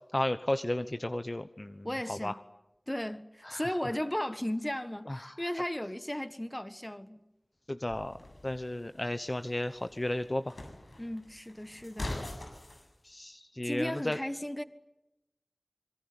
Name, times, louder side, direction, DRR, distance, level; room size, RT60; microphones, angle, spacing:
voice 1, 0.1-2.3 3.4-3.6 5.1-5.3 7.7-8.1 8.4-10.5 13.0-14.2, left 1 dB, 35° left, 1.0 m, -33 dB
voice 2, 1.8-2.4 2.9-7.2 11.0-12.1 13.6-14.6, left 1 dB, 20° left, 1.6 m, -35 dB
sound 1, 7.9-12.9, left 1 dB, 90° left, 7.7 m, -44 dB
26.0 x 23.0 x 9.9 m
wide cardioid pair, 50°, 0 cm